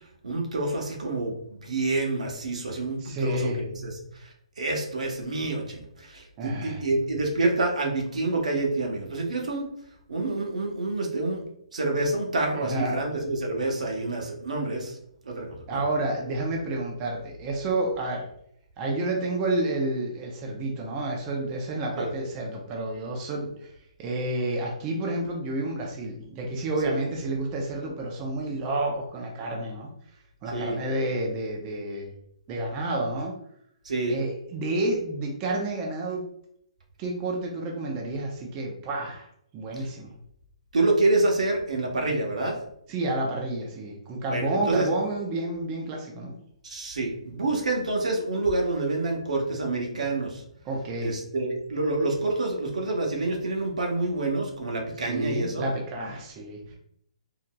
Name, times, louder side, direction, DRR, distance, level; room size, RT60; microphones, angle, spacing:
voice 1, 0.2-4.3 4.6-9.7 10.1-11.4 11.7-15.0 15.2-15.8 22.0-22.1 26.8-26.9 30.5-30.8 33.8-34.2 40.7-42.6 44.3-44.9 46.6-50.4 51.0-55.6, right 2 dB, 85° right, 0 dB, 1.0 m, -27 dB
voice 2, 3.0-3.6 6.4-6.8 12.5-13.0 15.7-18.3 18.8-23.7 24.0-29.9 30.4-32.1 32.5-33.3 34.1-36.2 37.0-39.3 39.5-40.1 42.9-46.3 50.7-51.2 55.1-56.7, right 2 dB, 20° right, -1 dB, 0.5 m, -30 dB
3.8 x 2.8 x 2.2 m, 0.71 s
hypercardioid pair, 160°, 4 cm